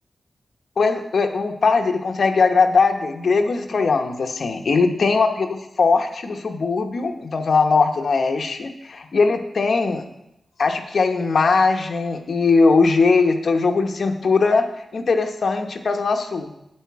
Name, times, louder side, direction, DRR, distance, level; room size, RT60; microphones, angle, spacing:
voice 1, 0.8-10.1 10.6-14.7 14.9-16.5, left 4 dB, 60° left, 5 dB, 0.9 m, -20 dB
8.9 x 8.4 x 4.6 m, 0.83 s
wide cardioid pair, 165°, 0 cm